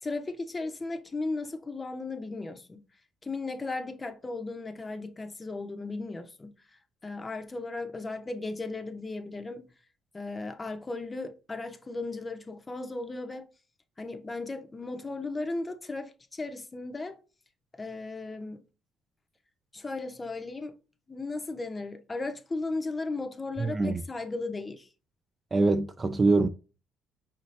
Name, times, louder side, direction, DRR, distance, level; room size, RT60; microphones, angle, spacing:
voice 1, 0.0-2.8 3.2-9.7 10.1-13.5 14.0-17.2 17.7-18.6 19.7-20.8 21.1-24.9, left 3 dB, 20° left, 0.7 m, -36 dB
voice 2, 23.6-24.0 25.5-26.5, right 3 dB, 25° right, 0.4 m, -24 dB
5.6 x 2.7 x 3.2 m
cardioid pair, 120°, 0 cm